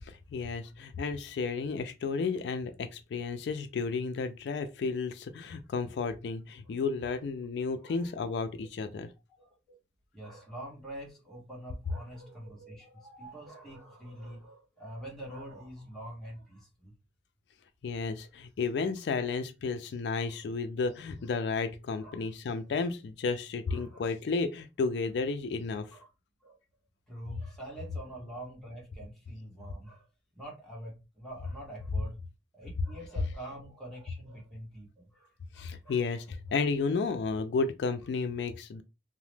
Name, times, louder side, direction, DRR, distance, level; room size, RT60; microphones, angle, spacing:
voice 1, 0.0-9.1 17.8-26.0 35.6-38.8, left 4 dB, 70° left, 0.3 m, -32 dB
voice 2, 7.8-8.7 9.3-9.8 10.1-16.9 20.3-20.4 20.9-21.0 21.2-21.3 22.0-22.3 23.7-24.1 25.9-26.1 26.4-26.6 27.1-30.0 30.3-32.2 32.5-36.0, right 1 dB, ahead, 1.2 m, -46 dB
2.8 x 2.0 x 3.2 m
head